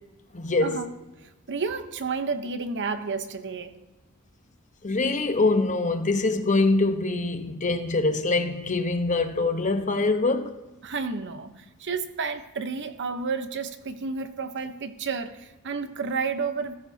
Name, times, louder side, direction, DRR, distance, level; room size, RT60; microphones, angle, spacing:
voice 1, 0.3-0.8 4.8-10.5, left 3 dB, 35° left, 1.0 m, -24 dB
voice 2, 1.5-3.7 10.8-16.7, right 4 dB, 55° right, 0.9 m, -31 dB
17.0 x 14.5 x 2.8 m
head